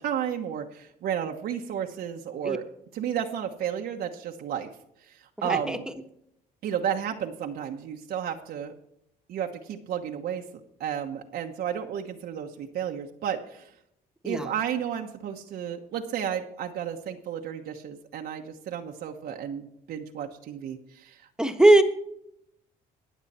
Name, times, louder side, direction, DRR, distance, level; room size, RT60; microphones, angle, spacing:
voice 1, 0.0-2.6 2.9-4.7 5.0-5.8 6.6-8.7 9.3-10.4 10.8-13.7 14.2-21.3, right 9 dB, 65° right, 2 dB, 1.2 m, -32 dB
voice 2, 5.4-5.8 14.2-14.5 21.4-21.8, right 1 dB, 5° right, 7 dB, 1.4 m, -20 dB
21.5 x 7.4 x 4.3 m, 0.76 s
cardioid pair, 110°, 17 cm